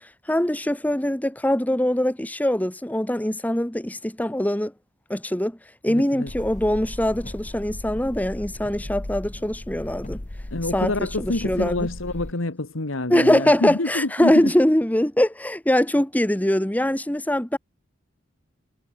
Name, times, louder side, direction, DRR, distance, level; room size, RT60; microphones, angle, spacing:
voice 1, 0.0-4.7 5.1-5.6 5.8-10.2 10.7-11.9 13.1-17.6, left 1 dB, 10° left, 1.2 m, -22 dB
voice 2, 5.9-6.3 10.5-14.5, left 2 dB, 85° left, 1.9 m, -27 dB
sound 1, 6.3-12.3, left 1 dB, 40° left, 1.3 m, -36 dB
head